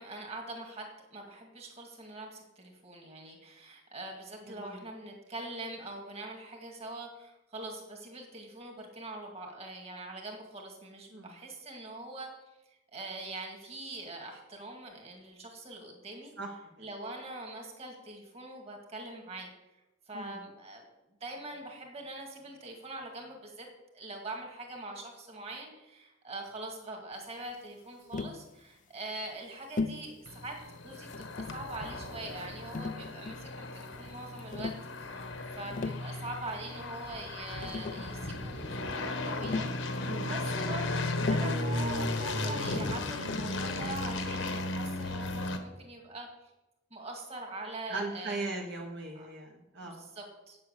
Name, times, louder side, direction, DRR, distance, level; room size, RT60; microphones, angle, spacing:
voice 1, 0.0-12.3 12.9-16.3 16.8-19.5 20.1-20.8 21.2-23.7 23.9-30.6 30.8-34.7 35.0-46.5 46.9-48.4 49.2-49.3 49.9-50.6, right 2 dB, 30° right, 2 dB, 2.2 m, -43 dB
voice 2, 4.4-4.8 11.1-11.4 16.4-16.5 20.1-20.4 40.0-40.4 47.9-50.0, right 2 dB, 60° right, -1 dB, 1.4 m, -39 dB
Tap, 28.1-28.4 29.8-30.1 31.1-31.7 32.7-33.5 34.5-34.9 35.6-36.1 37.3-37.4 37.6-38.1 39.4-39.8 41.2-41.7 43.3-43.6, left 3 dB, 40° left, 0.4 m, -36 dB
sound 1, 30.3-45.6, left 2 dB, 70° left, 1.2 m, -35 dB
8.2 x 7.6 x 8.2 m, 0.97 s
head